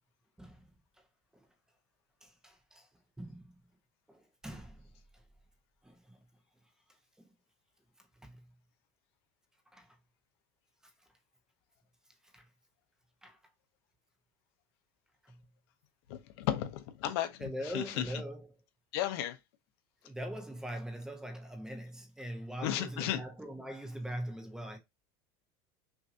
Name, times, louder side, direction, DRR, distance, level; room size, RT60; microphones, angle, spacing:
voice 1, 2.2-2.9 3.2-3.5 4.1-4.8 5.8-6.2 7.2-7.3 8.2-8.5 9.7-10.0 12.3-12.5 13.2-13.4 15.3-15.4 17.4-18.5 20.0-24.8, right 1 dB, 5° right, 0.8 m, -42 dB
voice 2, 16.1-17.3 17.7-18.0 18.9-19.4 22.6-23.2, left 12 dB, 70° left, 0.9 m, -33 dB
5.9 x 2.7 x 2.6 m
supercardioid pair, 160°, 14 cm